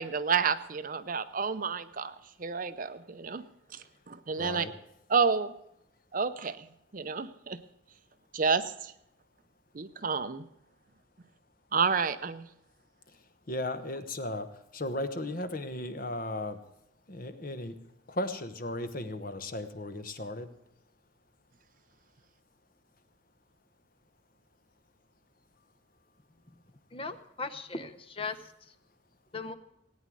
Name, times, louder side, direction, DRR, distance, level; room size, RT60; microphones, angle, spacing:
voice 1, 0.0-2.1 2.4-3.4 3.7-4.6 5.1-5.5 6.1-6.7 6.9-7.6 8.3-8.9 9.7-10.5 11.7-12.5, right 5 dB, 40° right, 12 dB, 0.6 m, -30 dB
voice 2, 4.4-4.7 13.1-16.6 17.1-17.8 18.1-20.5, left 1 dB, 45° left, 9 dB, 1.1 m, -36 dB
voice 3, 26.9-28.4 29.3-29.5, left 4 dB, 25° left, 11 dB, 0.8 m, -37 dB
18.0 x 9.5 x 6.2 m, 0.81 s
head